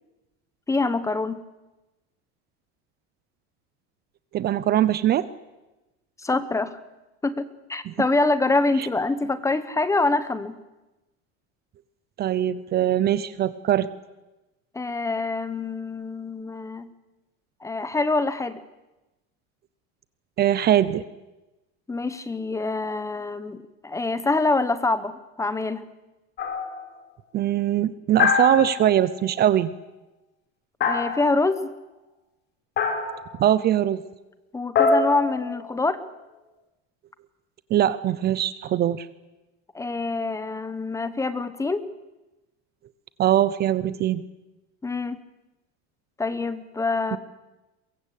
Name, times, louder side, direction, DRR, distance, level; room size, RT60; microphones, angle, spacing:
voice 1, 0.7-1.4 6.2-6.8 7.2-10.6 14.7-16.9 17.6-18.6 21.9-25.9 30.8-31.7 34.5-36.0 39.7-41.8 44.8-45.2 46.2-47.2, left 3 dB, 10° left, 13 dB, 1.0 m, -25 dB
voice 2, 4.3-5.3 7.9-8.0 12.2-13.9 20.4-21.0 27.3-29.7 33.4-34.0 37.7-39.1 43.2-44.2 47.1-47.2, right 11 dB, 30° right, 16 dB, 0.7 m, -21 dB
sound 1, 26.4-26.9 28.2-29.1 30.8-31.6 32.8-33.3 34.8-36.0, left 5 dB, 35° left, 3.8 m, -24 dB
23.0 x 22.5 x 8.4 m, 1.0 s
cardioid pair, 165°, 33 cm